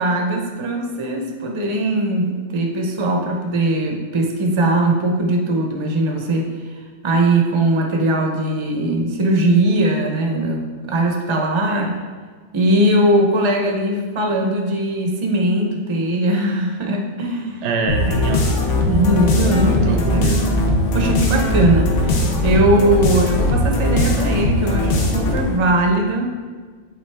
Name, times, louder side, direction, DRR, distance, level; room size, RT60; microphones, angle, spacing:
voice 1, 0.0-6.5 7.0-12.0 12.5-17.6 18.8-20.1 20.9-26.3, right 1 dB, 30° right, 1 dB, 0.6 m, -20 dB
voice 2, 17.6-18.6 19.5-20.5, right 3 dB, 75° right, 3 dB, 0.8 m, -25 dB
sound 1, 17.9-25.6, left 1 dB, 85° left, 1.2 m, -19 dB
7.8 x 3.8 x 3.4 m, 1.5 s
omnidirectional pair, 1.2 m